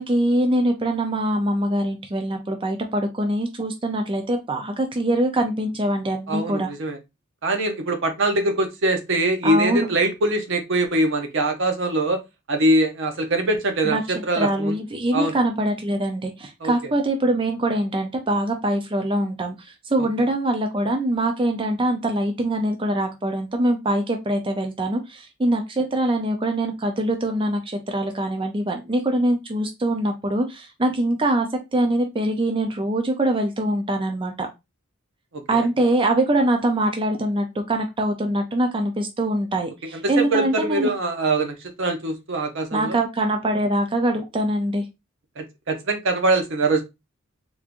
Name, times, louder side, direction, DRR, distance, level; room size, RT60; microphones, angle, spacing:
voice 1, 0.0-6.7 9.4-9.9 13.8-14.0 14.4-34.5 35.5-40.9 42.7-44.8, right 1 dB, 25° right, 4 dB, 0.5 m, -23 dB
voice 2, 6.3-7.0 7.4-12.2 12.5-14.8 15.1-15.4 16.6-16.7 35.3-35.7 39.9-43.0 45.4-46.8, right 2 dB, 65° right, 5 dB, 0.8 m, -23 dB
3.5 x 3.1 x 2.5 m, 0.23 s
head